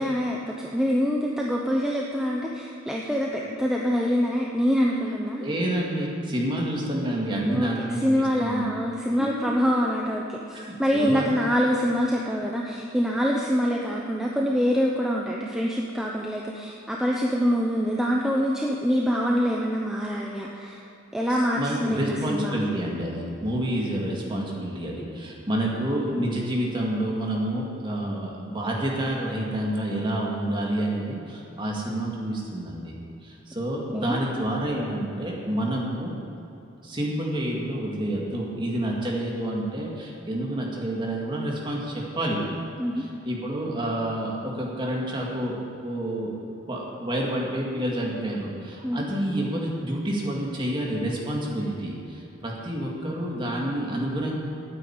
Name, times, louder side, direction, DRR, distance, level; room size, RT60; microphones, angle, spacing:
voice 1, 0.0-5.5 7.5-20.8 21.1-22.8 33.9-34.2 42.8-43.0 48.8-49.1, equal, 5° right, -2 dB, 0.7 m, -25 dB
voice 2, 5.4-8.6 9.2-9.5 10.5-11.3 21.6-32.9 33.2-36.1 36.8-42.4 43.0-45.6 45.8-46.3 46.7-54.4, right 1 dB, 25° right, -3 dB, 2.1 m, -28 dB
9.3 x 9.2 x 8.7 m, 2.8 s
head